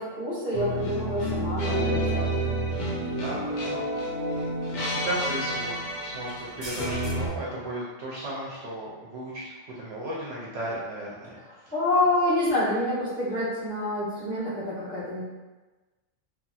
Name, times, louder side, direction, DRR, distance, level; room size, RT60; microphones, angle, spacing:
voice 1, 0.0-2.5 11.7-15.2, left 1 dB, 5° left, -11 dB, 1.0 m, -27 dB
sound 1, 0.5-7.3, right 1 dB, 50° left, 0.6 m, -29 dB
sound 2, 2.4-2.5 3.1-3.2 5.0-5.2 6.3-7.1, right 1 dB, 35° right, 0.5 m, -39 dB
voice 2, 3.1-4.5 4.9-9.5 9.8-11.4, right 1 dB, 65° right, -5 dB, 0.8 m, -35 dB
2.9 x 2.6 x 2.3 m, 1.2 s
omnidirectional pair, 1.3 m